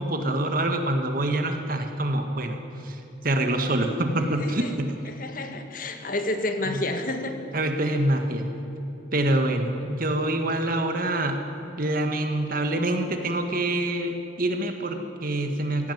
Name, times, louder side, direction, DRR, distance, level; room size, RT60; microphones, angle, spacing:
voice 1, 0.0-2.6 2.8-3.0 3.2-4.9 6.7-6.8 7.5-8.5 9.1-11.4 11.8-15.9, right 1 dB, 50° right, 5 dB, 1.8 m, -25 dB
voice 2, 4.4-4.7 5.1-7.3, left 2 dB, 45° left, 6 dB, 1.7 m, -30 dB
18.0 x 16.0 x 9.5 m, 3.0 s
head